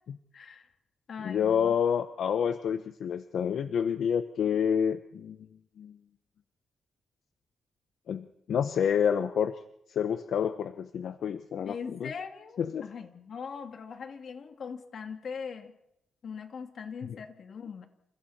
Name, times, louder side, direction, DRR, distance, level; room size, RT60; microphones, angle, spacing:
voice 1, 0.3-0.7 1.1-1.8 11.7-15.8 16.2-17.9, left 6 dB, 55° left, 6 dB, 2.5 m, -41 dB
voice 2, 1.2-5.4 5.8-5.9 8.1-9.5 9.9-12.1 12.6-12.9, left 8 dB, 75° left, 10 dB, 0.9 m, -28 dB
29.0 x 28.5 x 4.4 m, 0.82 s
wide cardioid pair, 130°, 0 cm